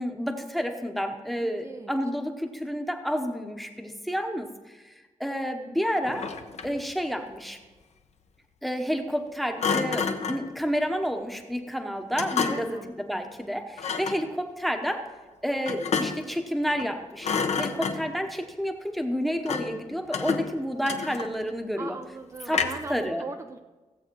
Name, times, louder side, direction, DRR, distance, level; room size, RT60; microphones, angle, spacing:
voice 1, 0.0-4.9 5.2-6.3 6.6-7.6 8.6-15.1 15.4-22.0 22.5-22.6 22.9-23.2, equal, ahead, 5 dB, 0.9 m, -30 dB
voice 2, 1.4-1.9 12.5-12.9 17.7-18.2 21.8-23.6, right 3 dB, 25° right, 6 dB, 0.4 m, -40 dB
Thump thud, 6.0-6.9 9.6-10.5 12.2-12.8 13.8-14.3 15.7-16.3 16.7-16.9 17.2-18.2 19.5-19.8 20.1-21.5 22.5-23.0, left 5 dB, 60° left, 0.9 m, -29 dB
16.0 x 7.9 x 4.5 m, 1.2 s
wide cardioid pair, 180°, 13 cm